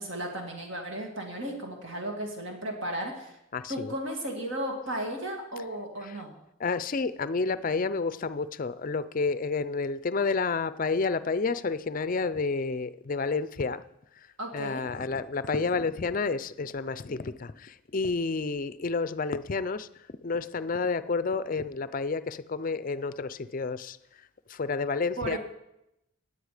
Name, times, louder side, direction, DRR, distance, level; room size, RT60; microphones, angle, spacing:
voice 1, 0.0-3.4 3.7-6.3 14.4-14.8 25.2-25.4, right 1 dB, 60° right, 2 dB, 2.2 m, -35 dB
voice 2, 3.5-4.0 5.6-5.7 6.0-6.2 6.6-13.8 14.2-19.9 20.2-25.4, left 4 dB, 40° left, 14 dB, 0.4 m, -30 dB
16.5 x 9.6 x 5.0 m, 0.85 s
head